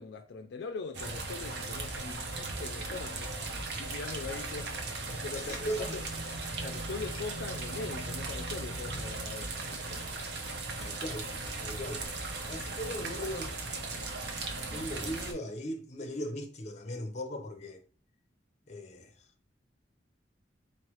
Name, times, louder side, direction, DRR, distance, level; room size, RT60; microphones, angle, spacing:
voice 1, 0.0-3.4 3.8-6.1 6.6-10.1, left 4 dB, 70° left, 0.4 m, -42 dB
sound 1, 0.9-15.3, right 3 dB, 75° right, 0.7 m, -37 dB
voice 2, 5.3-6.0 10.8-11.3 11.6-12.1 12.5-13.5 14.7-17.8 18.7-19.1, equal, 40° left, 0.7 m, -38 dB
4.2 x 3.1 x 3.0 m
head